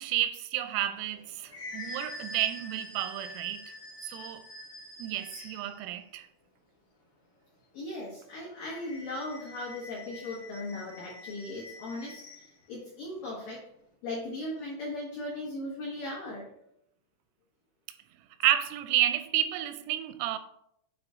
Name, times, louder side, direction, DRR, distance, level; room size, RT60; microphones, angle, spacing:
voice 1, 0.0-3.7 4.0-4.4 5.0-6.3 18.4-20.4, right 12 dB, 85° right, 3.2 m, -30 dB
sound 1, 1.0-5.8 8.5-12.5, left 1 dB, 60° left, 1.8 m, -45 dB
voice 2, 7.7-13.6 14.0-16.5, left 2 dB, 85° left, 1.9 m, -38 dB
8.5 x 3.2 x 3.6 m
omnidirectional pair, 5.9 m